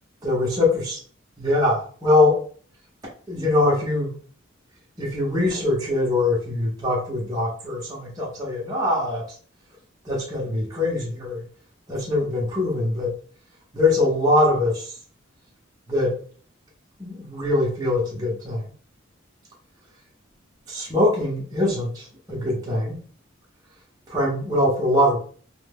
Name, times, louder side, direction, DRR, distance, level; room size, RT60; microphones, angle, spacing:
voice 1, 0.2-1.0 1.4-2.4 3.3-4.1 5.0-9.4 10.0-11.4 11.9-13.1 13.7-15.0 15.9-16.2 17.0-18.6 20.7-23.0 24.1-25.2, left 2 dB, 20° right, 0.7 m, -22 dB
2.7 x 2.1 x 3.4 m
head